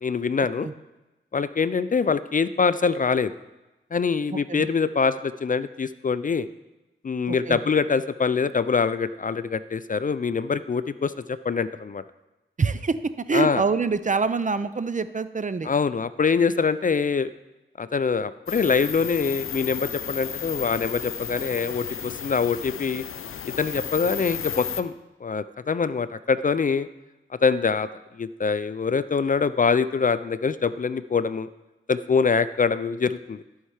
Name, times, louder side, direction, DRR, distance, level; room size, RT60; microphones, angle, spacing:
voice 1, 0.0-0.7 1.3-3.3 3.9-6.5 7.0-12.0 13.3-13.6 15.6-17.3 17.8-23.0 23.6-24.9 25.2-26.9 27.4-27.9 28.2-31.5 31.9-33.4, left 5 dB, 40° left, 14 dB, 0.4 m, -24 dB
voice 2, 4.3-4.7 7.3-7.6 12.6-15.7, right 4 dB, 35° right, 13 dB, 0.6 m, -25 dB
sound 1, 18.5-24.8, left 8 dB, 90° left, 0.6 m, -34 dB
13.5 x 5.6 x 4.9 m, 1.0 s
cardioid pair, 55°, 21 cm